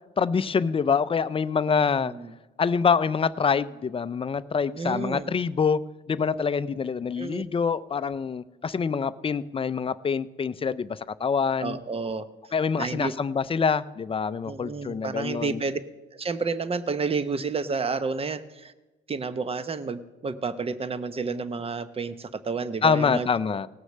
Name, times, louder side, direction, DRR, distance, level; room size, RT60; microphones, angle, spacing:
voice 1, 0.2-2.1 2.6-11.8 12.5-15.6 22.8-23.7, left 6 dB, 30° left, 14 dB, 0.5 m, -25 dB
voice 2, 2.0-2.3 4.7-5.3 7.2-7.4 11.6-12.3 12.8-13.1 14.4-15.8 16.1-18.7 19.1-23.6, right 4 dB, 30° right, 12 dB, 0.8 m, -30 dB
18.0 x 6.4 x 6.5 m, 1.1 s
cardioid pair, 90°, 20 cm